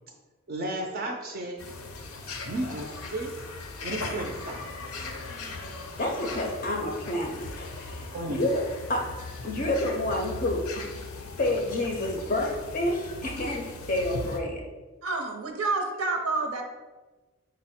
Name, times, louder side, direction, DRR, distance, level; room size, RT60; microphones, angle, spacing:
voice 1, 0.5-1.6 2.4-3.3 3.8-4.8 8.1-8.5, right 1 dB, 45° right, 2 dB, 0.4 m, -33 dB
sound 1, 1.6-14.4, left 3 dB, 90° left, 0.5 m, -39 dB
voice 2, 6.0-8.6 8.9-9.2 9.4-10.9 11.4-14.6, left 1 dB, 40° left, 1 dB, 0.4 m, -29 dB
voice 3, 15.0-16.6, right 3 dB, 90° right, 3 dB, 0.6 m, -28 dB
5.2 x 2.1 x 4.1 m, 1.3 s
head